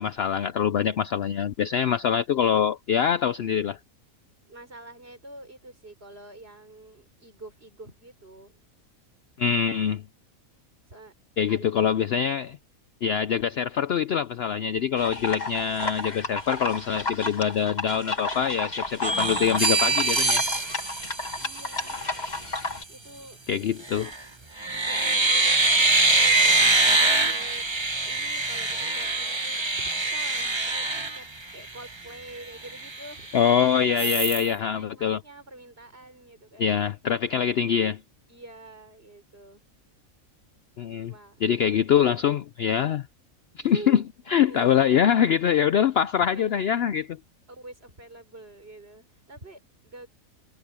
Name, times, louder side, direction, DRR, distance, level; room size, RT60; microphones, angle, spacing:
voice 1, 0.0-3.8 9.4-10.0 11.4-12.6 13.0-20.4 23.5-24.1 33.3-35.2 36.6-38.0 40.8-41.1 41.4-43.1 43.6-44.0 44.3-47.2, left 8 dB, 60° left, 0.7 m, -24 dB
voice 2, 4.5-8.6 10.9-11.1 11.5-11.7 21.4-22.1 22.9-23.4 24.7-30.9 31.1-31.3 31.5-33.3 33.9-36.8 38.3-39.6 41.1-41.4 43.6-44.0 44.4-45.0 46.2-46.7 47.5-50.1, right 2 dB, 45° right, 5.1 m, -46 dB
sound 1, 15.0-22.8, left 3 dB, 30° left, 2.2 m, -32 dB
sound 2, 19.0-22.0 23.8-24.2 24.6-31.8 32.3-32.4 32.7-33.5 34.0-34.5, right 2 dB, 20° right, 1.2 m, -24 dB
omnidirectional pair, 1.5 m